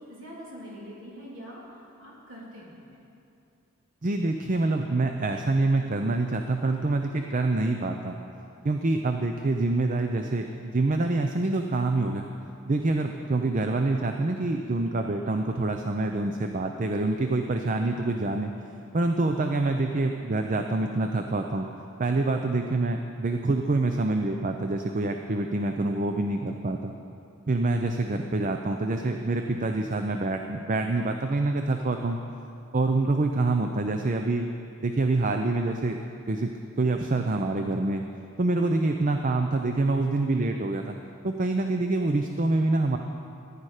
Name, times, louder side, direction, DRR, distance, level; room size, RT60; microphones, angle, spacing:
voice 1, 0.0-3.0, equal, 65° right, -5 dB, 3.3 m, -44 dB
voice 2, 4.0-8.2 8.6-12.3 12.6-18.5 18.9-21.7 22.0-26.9 27.5-32.2 32.7-34.5 34.8-36.0 36.3-36.5 36.8-38.0 38.4-41.0 41.2-43.0, right 2 dB, 35° right, 5 dB, 0.5 m, -26 dB
14.5 x 10.0 x 4.9 m, 2.6 s
head